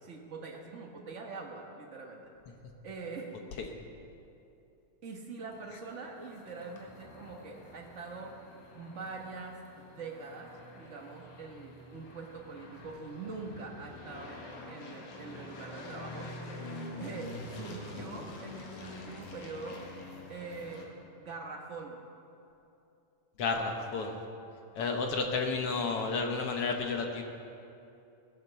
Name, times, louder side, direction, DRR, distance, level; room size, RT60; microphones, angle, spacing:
voice 1, 0.0-2.3 2.8-3.3 5.0-8.4 8.7-16.3 17.0-19.8 20.3-20.9 21.2-22.0, right 4 dB, 80° right, 0 dB, 0.6 m, -43 dB
sound 1, 5.5-20.8, left 2 dB, 85° left, 3.2 m, -47 dB
voice 2, 23.4-24.2 24.7-27.2, left 4 dB, 60° left, 3 dB, 1.7 m, -31 dB
17.5 x 10.5 x 6.9 m, 2.8 s
omnidirectional pair, 3.4 m